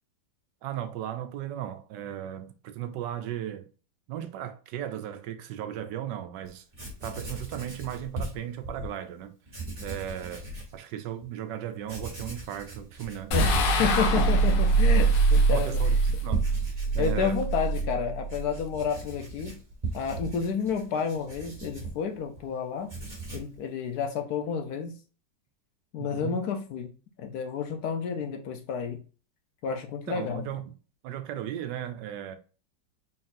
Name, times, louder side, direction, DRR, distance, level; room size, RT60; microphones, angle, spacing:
voice 1, 0.6-3.7 4.1-6.6 7.0-9.3 9.8-13.4 14.1-14.3 15.5-17.4 26.0-26.4 30.1-30.6 31.0-32.4, right 11 dB, 80° right, 1.2 m, -36 dB
Writing, 6.4-6.5 6.7-8.9 9.5-10.7 11.2-11.3 11.8-22.5 22.8-23.6, right 3 dB, 25° right, 1.5 m, -39 dB
sound 1, 13.3-18.7, right 3 dB, 85° left, 1.5 m, -23 dB
voice 2, 13.3-15.7 17.0-19.6 19.9-22.9 23.3-24.9 25.9-26.9 27.2-29.0 29.6-30.5, left 6 dB, 70° left, 1.1 m, -30 dB
4.1 x 3.9 x 2.5 m
omnidirectional pair, 1.9 m